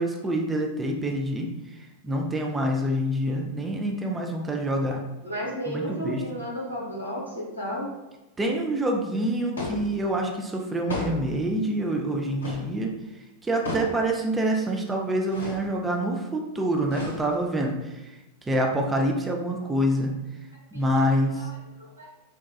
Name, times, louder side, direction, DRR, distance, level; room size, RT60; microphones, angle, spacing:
voice 1, 0.0-1.5 2.0-5.0 5.7-6.2 8.4-12.9 13.4-17.9 18.5-20.1 20.7-21.5, right 1 dB, 15° right, 1 dB, 0.4 m, -26 dB
voice 2, 5.2-7.9 20.7-21.0 21.4-22.1, equal, 90° right, -5 dB, 0.9 m, -34 dB
sound 1, 9.6-9.9 10.9-11.4 12.4-12.7 13.6-14.1 15.3-15.7 16.9-17.5, left 1 dB, 70° left, 0.6 m, -33 dB
3.9 x 2.2 x 2.2 m, 1.0 s
figure-of-eight pair, 90°, 0 cm